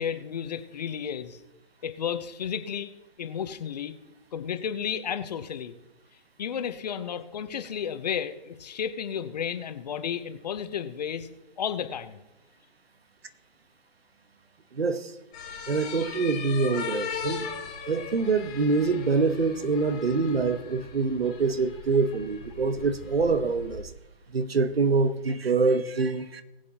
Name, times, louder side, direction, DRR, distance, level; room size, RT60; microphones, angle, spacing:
voice 1, 0.0-1.4 1.8-2.9 3.2-3.9 4.3-5.7 6.4-11.3 11.6-12.2, left 8 dB, 45° left, 11 dB, 0.9 m, -32 dB
voice 2, 14.7-15.1 15.7-17.5 17.9-23.9 24.3-26.4, right 4 dB, 90° right, 12 dB, 1.1 m, -25 dB
sound 1, 15.3-23.8, left 6 dB, 5° left, 0.4 m, -39 dB
20.0 x 7.7 x 2.9 m, 0.97 s
hypercardioid pair, 150°, 30 cm